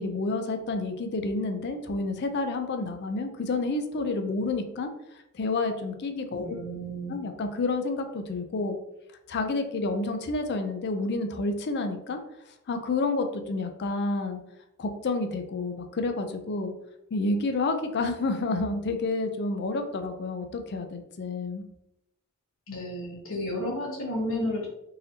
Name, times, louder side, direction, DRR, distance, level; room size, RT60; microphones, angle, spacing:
voice 1, 0.0-6.6 7.1-8.8 9.3-12.2 12.7-14.4 14.8-16.7 17.1-21.6, left 3 dB, 55° left, 7 dB, 0.4 m, -29 dB
voice 2, 6.4-7.2 22.7-24.7, left 1 dB, 70° left, -3 dB, 1.3 m, -32 dB
3.9 x 2.7 x 2.8 m, 0.86 s
head